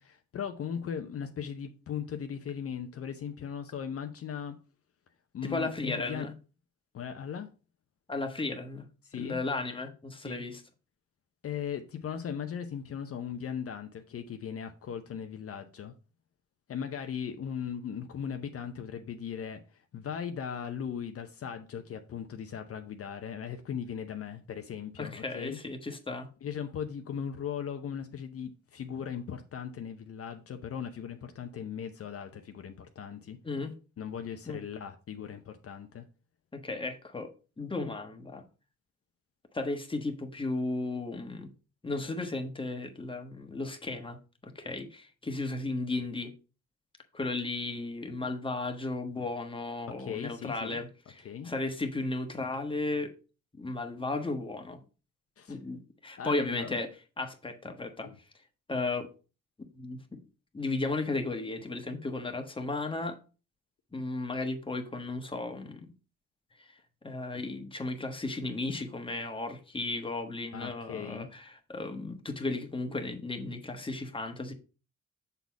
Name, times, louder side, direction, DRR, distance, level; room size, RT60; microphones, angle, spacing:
voice 1, 0.3-4.6 5.3-6.3 6.9-7.5 9.0-9.4 10.2-10.4 11.4-15.9 16.7-25.6 26.4-33.4 34.0-36.1 50.0-50.8 51.2-51.5 55.4-55.6 56.2-56.7 58.0-58.1 70.5-71.3, left 8 dB, 50° left, 0.7 m, -38 dB
voice 2, 5.4-6.3 8.1-8.8 9.2-10.6 25.0-26.3 33.4-33.8 34.5-34.6 36.5-37.3 37.6-38.4 39.5-41.5 41.8-44.2 44.4-46.3 47.1-53.1 53.6-54.8 55.5-56.9 57.2-58.1 58.7-59.1 59.7-60.2 60.5-63.2 63.9-65.9 66.6-66.8 67.0-74.5, left 2 dB, 15° left, 1.3 m, -35 dB
6.8 x 4.1 x 4.6 m
cardioid pair, 90°, 30 cm